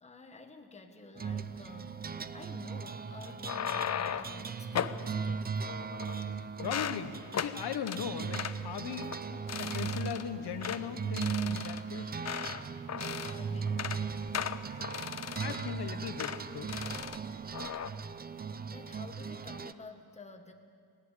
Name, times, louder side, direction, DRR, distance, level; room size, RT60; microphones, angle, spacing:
voice 1, 0.0-5.6 13.2-14.0 18.6-20.5, left 3 dB, 15° left, 4 dB, 1.4 m, -50 dB
sound 1, 1.2-19.7, right 6 dB, 25° right, 0.5 m, -38 dB
sound 2, 3.3-4.4 4.7-5.0 5.7-6.3 6.6-7.0 7.3-7.5 7.9-8.0 8.3-8.6 9.0-9.2 9.5-10.2 10.6-10.8 11.2-12.6 12.9-13.4 13.7-14.0 14.3-15.7 16.2-16.4 16.7-17.2 17.5-17.9, left 8 dB, 40° left, 0.6 m, -37 dB
voice 2, 6.3-9.1 9.6-12.1 14.7-14.8 15.3-16.7, left 8 dB, 75° left, 8 dB, 1.3 m, -39 dB
Breathing, 13.0-18.1, equal, 5° right, 2.2 m, -60 dB
19.5 x 16.5 x 8.1 m, 2.2 s
wide cardioid pair, 135°, 41 cm